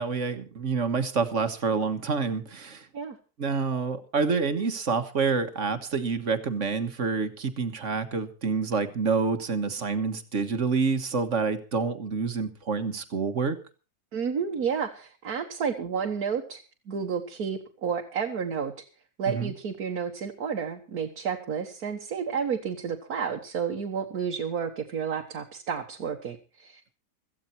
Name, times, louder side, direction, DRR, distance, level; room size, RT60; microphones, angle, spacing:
voice 1, 0.0-2.9 3.4-13.6 19.3-19.5, right 4 dB, 55° right, 9 dB, 1.7 m, -27 dB
voice 2, 14.1-18.7 19.2-26.8, right 6 dB, 80° right, 1 dB, 1.9 m, -31 dB
16.5 x 14.5 x 4.4 m, 0.35 s
omnidirectional pair, 1.6 m